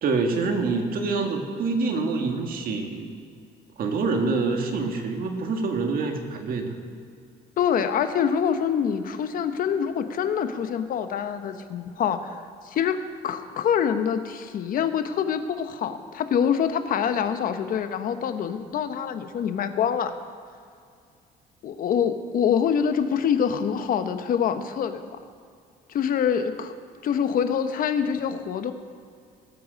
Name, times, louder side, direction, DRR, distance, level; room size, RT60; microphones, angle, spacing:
voice 1, 0.0-3.2 3.8-6.7, right 4 dB, 60° right, 4 dB, 1.7 m, -26 dB
voice 2, 7.6-13.0 13.2-20.1 21.6-25.1 25.9-26.7 27.0-28.7, left 8 dB, 55° left, 9 dB, 1.0 m, -25 dB
18.0 x 7.8 x 5.2 m, 2.2 s
cardioid pair, 110°, 17 cm